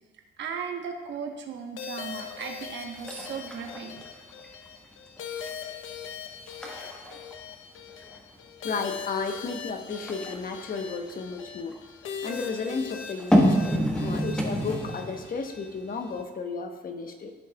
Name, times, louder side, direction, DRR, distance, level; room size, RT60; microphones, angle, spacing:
voice 1, 0.4-4.0, right 6 dB, 65° right, 3 dB, 1.2 m, -36 dB
sound 1, 1.8-16.2, left 6 dB, 80° left, 0.8 m, -41 dB
sound 2, 2.3-2.6 2.9-4.7 5.1-5.5 6.0-6.1 6.5-8.3 9.9-11.8 13.1-15.4 15.7-15.8, equal, 5° left, 1.3 m, -27 dB
voice 2, 8.6-11.8 12.2-17.3, left 4 dB, 45° left, 5 dB, 1.0 m, -33 dB
14.0 x 5.5 x 2.3 m, 1.5 s
cardioid pair, 90°, 20 cm